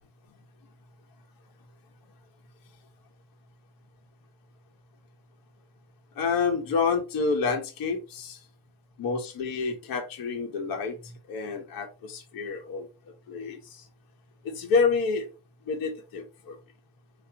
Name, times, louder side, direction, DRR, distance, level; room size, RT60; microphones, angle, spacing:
voice 1, 6.2-8.4 9.0-12.9 13.3-13.8 14.4-15.3 15.6-16.6, left 5 dB, 50° left, 3 dB, 1.2 m, -28 dB
4.7 x 2.9 x 3.8 m, 0.29 s
cardioid pair, 175°, 45 cm